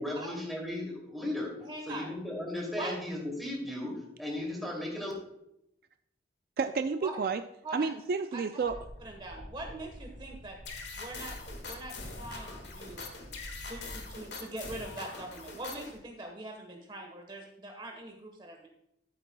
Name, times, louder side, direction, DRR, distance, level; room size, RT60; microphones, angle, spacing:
voice 1, 0.0-1.5 1.8-5.1, left 1 dB, ahead, -2 dB, 2.5 m, -36 dB
voice 2, 1.6-2.1 2.8-2.9 7.0-7.1 7.6-7.9 8.3-8.4 9.0-10.6 11.0-11.3 11.6-13.0 13.7-18.7, right 2 dB, 25° right, 2 dB, 1.2 m, -42 dB
voice 3, 6.6-7.4 7.7-8.8, right 5 dB, 55° right, 9 dB, 0.3 m, -30 dB
sound 1, 8.6-14.2, equal, 70° right, 1.8 m, -48 dB
sound 2, 10.6-16.0, left 4 dB, 75° left, 1.6 m, -43 dB
13.5 x 8.0 x 2.2 m, 0.80 s
head